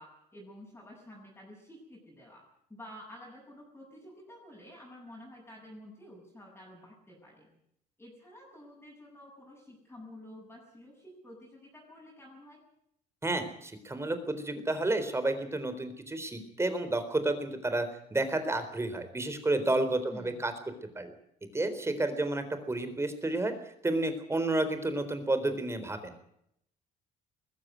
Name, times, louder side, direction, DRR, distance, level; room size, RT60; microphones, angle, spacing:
voice 1, 0.0-7.5 8.0-12.6 20.1-20.4, left 1 dB, 10° left, -5 dB, 7.6 m, -50 dB
voice 2, 13.2-20.5 21.0-21.1 21.5-23.5 23.8-26.1, right 2 dB, 15° right, 10 dB, 4.0 m, -31 dB
21.0 x 15.0 x 9.4 m, 0.74 s
cardioid pair, 110°, 17 cm